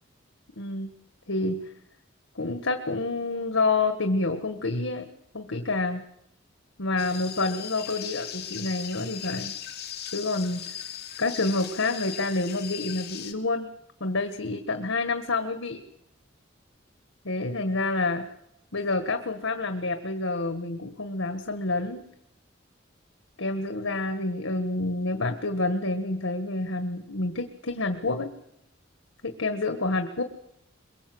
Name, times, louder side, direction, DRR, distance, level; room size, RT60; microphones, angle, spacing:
voice 1, 0.6-0.9 1.3-1.7 2.4-5.1 5.3-6.1 6.8-9.5 10.1-10.8 11.2-13.7 14.0-15.8 17.3-18.3 18.7-22.0 23.4-28.3 29.2-30.2, left 3 dB, 85° left, 7 dB, 1.7 m, -28 dB
sound 1, 7.0-13.3, left 9 dB, 55° left, 2.6 m, -38 dB
23.0 x 23.0 x 7.9 m, 0.78 s
head